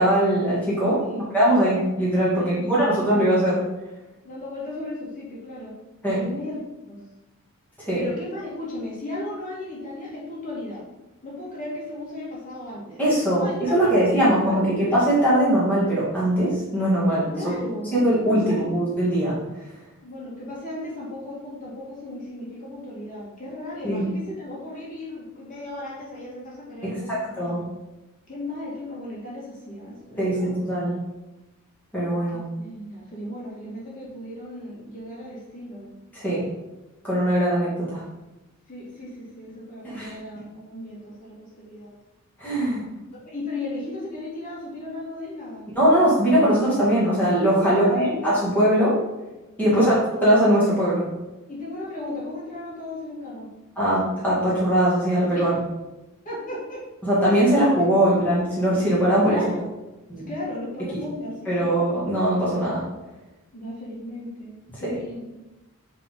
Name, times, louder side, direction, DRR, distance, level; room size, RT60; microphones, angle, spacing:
voice 1, 0.0-3.6 6.0-6.2 7.8-8.0 13.0-17.5 17.9-19.4 23.8-24.0 26.8-27.6 30.2-31.0 31.9-32.4 36.1-36.4 37.0-38.0 39.8-40.1 42.4-42.9 45.8-49.0 49.6-49.9 50.2-51.1 53.8-55.5 57.0-59.4 60.1-60.3 61.5-62.8 64.7-65.0, right 1 dB, 10° left, -9 dB, 1.9 m, -21 dB
voice 2, 2.3-3.2 4.2-5.7 6.2-6.6 6.9-7.0 7.9-10.8 11.2-13.0 13.4-14.9 17.3-18.0 18.3-18.8 20.0-27.7 28.3-30.6 32.6-35.9 38.7-42.0 43.2-45.7 47.6-48.3 49.6-50.0 51.5-53.5 55.3-55.5 56.2-56.8 57.4-57.6 58.0-58.2 59.2-59.7 60.3-61.8 63.5-65.3, left 1 dB, 40° left, -6 dB, 2.4 m, -35 dB
6.6 x 3.7 x 5.3 m, 1.0 s
head